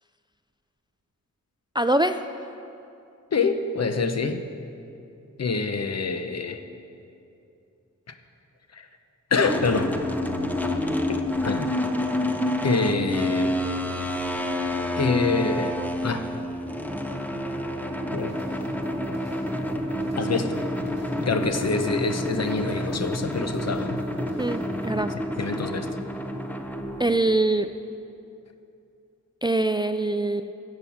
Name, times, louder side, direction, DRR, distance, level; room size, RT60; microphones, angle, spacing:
voice 1, 1.7-2.2 24.4-25.1 27.0-27.7 29.4-30.5, right 2 dB, 15° right, 10 dB, 0.3 m, -23 dB
voice 2, 3.3-4.4 5.4-6.6 8.7-8.9 9.3-9.9 11.1-11.7 12.6-13.5 14.9-16.3 18.1-18.3 20.2-20.7 21.2-24.0 25.4-25.9, left 4 dB, 55° left, 8 dB, 0.9 m, -26 dB
sound 1, 9.4-27.3, left 1 dB, 5° left, 0.7 m, -28 dB
sound 2, 18.2-25.0, equal, 20° left, 3.5 m, -43 dB
15.0 x 7.7 x 7.3 m, 2.6 s
wide cardioid pair, 120°, 31 cm